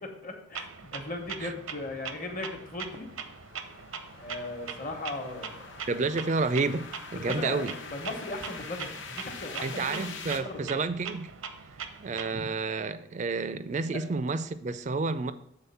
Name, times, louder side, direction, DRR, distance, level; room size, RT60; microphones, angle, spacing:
voice 1, 0.0-0.7 0.9-3.1 4.2-5.6 7.1-10.7, left 2 dB, 40° left, 1.1 m, -38 dB
Clock, 0.5-12.5, right 6 dB, 90° right, 0.7 m, -42 dB
sound 1, 1.6-10.4, left 5 dB, 65° left, 0.8 m, -45 dB
voice 2, 5.9-7.8 9.6-11.3 12.0-15.3, right 3 dB, 35° right, 0.3 m, -30 dB
7.1 x 4.0 x 5.6 m
head